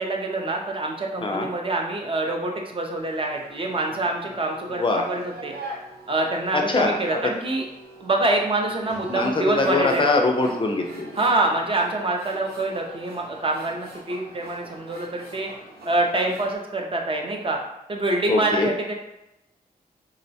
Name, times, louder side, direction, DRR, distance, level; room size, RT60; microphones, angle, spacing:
voice 1, 0.0-5.5 6.1-7.7 8.0-10.0 11.2-15.5 15.8-17.6 17.9-18.9, right 2 dB, 35° right, 1 dB, 0.5 m, -25 dB
sound 1, 2.9-16.6, right 1 dB, 85° right, 0.7 m, -43 dB
voice 2, 4.7-5.1 6.5-7.3 9.1-11.1 18.3-18.7, left 3 dB, 30° left, 2 dB, 0.4 m, -23 dB
3.8 x 2.1 x 2.6 m, 0.91 s
wide cardioid pair, 100°, 16 cm